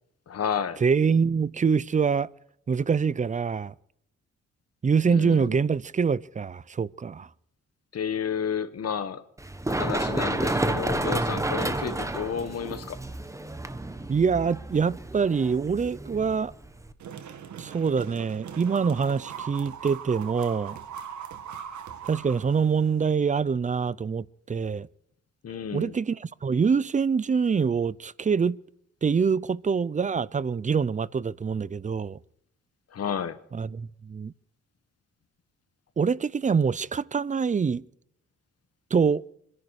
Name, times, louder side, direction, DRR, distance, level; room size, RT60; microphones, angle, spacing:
voice 1, 0.3-0.8 5.1-5.6 7.9-9.2 9.7-13.0 25.4-26.0 32.9-33.4, left 7 dB, 55° left, 1.5 m, -31 dB
voice 2, 0.8-2.3 2.7-3.7 4.8-7.3 14.1-16.5 17.6-20.8 22.0-24.9 25.7-26.2 26.4-28.6 29.0-32.2 33.5-34.3 36.0-37.8 38.9-39.2, right 6 dB, 25° right, 0.5 m, -25 dB
Run, 9.4-16.9, right 2 dB, 10° right, 1.2 m, -30 dB
sound 1, 17.0-23.0, right 8 dB, 75° right, 1.8 m, -40 dB
26.5 x 11.0 x 4.8 m
cardioid pair, 110°, 29 cm